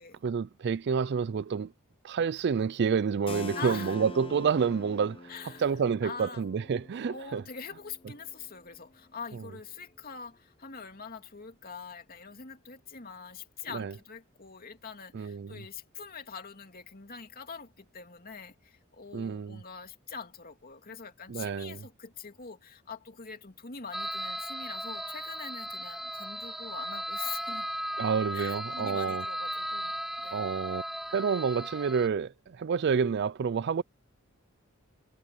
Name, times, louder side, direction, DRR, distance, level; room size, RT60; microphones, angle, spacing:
voice 1, 0.2-1.7 2.0-7.4 9.3-9.4 13.7-13.9 15.1-15.6 19.1-19.6 21.3-21.9 28.0-29.2 30.3-30.8 31.1-33.8, right 6 dB, 55° right, 0.4 m, -29 dB
Keyboard (musical), 3.3-8.8, left 2 dB, 25° left, 0.8 m, -45 dB
voice 2, 3.5-4.0 5.3-5.7 6.0-6.5 7.1-27.7 28.3-30.4, left 5 dB, 45° left, 2.6 m, -44 dB
sound 1, 23.9-32.1, equal, ahead, 1.1 m, -36 dB
head